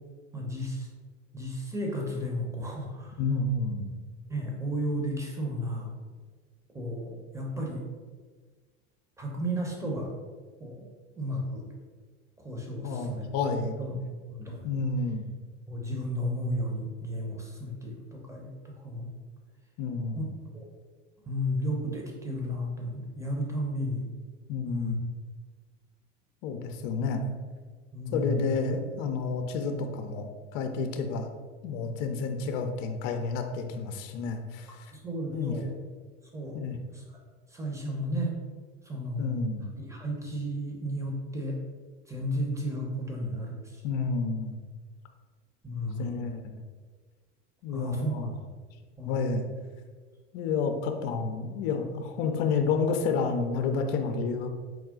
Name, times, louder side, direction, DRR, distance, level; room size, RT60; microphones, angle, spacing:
voice 1, 0.3-0.9 1.3-3.2 4.3-5.9 6.7-7.8 9.2-10.1 10.6-10.9 11.2-11.7 12.4-13.3 13.8-14.0 14.3-14.7 15.7-18.5 18.8-19.1 20.1-20.2 20.5-20.7 21.2-24.0 24.7-25.0 27.9-28.5 34.9-35.7 36.3-36.6 37.5-38.3 38.8-39.3 39.8-41.6 42.1-43.8 45.6-46.3 47.7-48.1 49.0-49.5, equal, 10° right, -1 dB, 1.0 m, -33 dB
voice 2, 3.2-3.9 12.8-13.8 14.6-15.2 19.8-20.3 24.5-25.0 26.4-27.2 28.1-31.3 31.6-34.9 35.3-35.5 36.5-36.8 39.2-39.7 43.8-44.6 45.8-46.6 47.6-48.3 49.0-49.5 50.3-54.5, left 4 dB, 60° left, 5 dB, 0.6 m, -30 dB
4.8 x 2.3 x 3.7 m, 1.5 s
hypercardioid pair, 95°, 36 cm